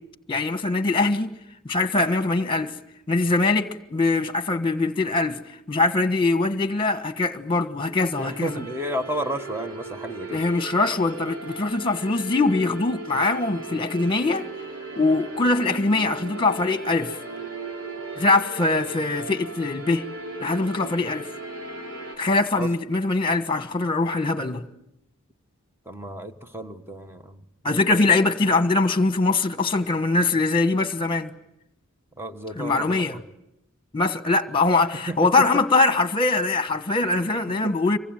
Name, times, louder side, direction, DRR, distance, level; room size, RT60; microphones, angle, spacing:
voice 1, 0.3-1.3 1.6-2.7 3.1-5.4 5.7-8.6 10.3-14.5 15.0-17.2 18.2-20.0 20.4-21.3 22.2-24.6 27.6-31.3 32.6-33.2 33.9-38.0, left 3 dB, 25° left, 1.4 m, -22 dB
sound 1, 8.1-22.2, right 2 dB, 70° right, 6.3 m, -37 dB
voice 2, 8.2-10.4 22.6-22.7 25.8-27.4 27.9-28.0 32.2-33.0 34.9-35.5 37.5-37.8, right 1 dB, 10° right, 1.3 m, -32 dB
27.0 x 24.0 x 9.0 m
head